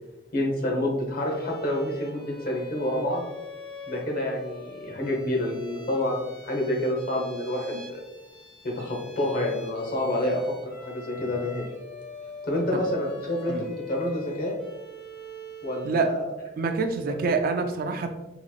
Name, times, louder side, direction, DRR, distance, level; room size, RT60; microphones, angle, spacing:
voice 1, 0.3-3.2 3.9-8.0 8.6-10.4 10.8-11.6 12.4-13.6 13.9-14.5 15.6-16.3, left 1 dB, 50° left, 0 dB, 0.9 m, -28 dB
Bowed string instrument, 1.1-16.0, equal, 5° left, 1.1 m, -44 dB
voice 2, 16.6-18.1, right 4 dB, 50° right, 6 dB, 0.3 m, -26 dB
3.8 x 3.0 x 2.3 m, 1.0 s
head